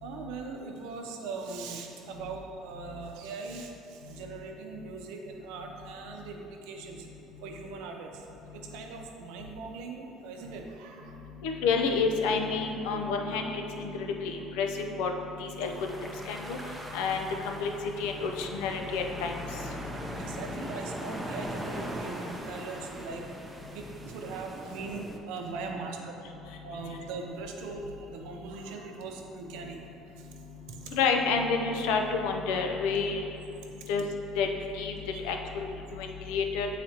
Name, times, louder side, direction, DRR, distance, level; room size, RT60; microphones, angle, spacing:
voice 1, 0.0-3.7 4.1-7.0 7.4-8.1 8.5-11.2 20.2-23.2 23.7-26.1 26.6-29.8 35.1-35.2, right 4 dB, 90° right, 2 dB, 0.7 m, -40 dB
voice 2, 11.4-14.7 15.0-15.1 15.4-15.7 16.0-16.6 16.9-17.7 18.0-19.3 30.9-33.2 33.9-34.1 34.4-34.5 34.7-34.9 35.2-35.6 36.0-36.7, left 5 dB, 90° left, 3 dB, 0.5 m, -29 dB
sound 1, 15.6-25.2, right 1 dB, 5° right, 0.5 m, -40 dB
8.5 x 4.0 x 2.8 m, 2.8 s
cardioid pair, 145°, 0 cm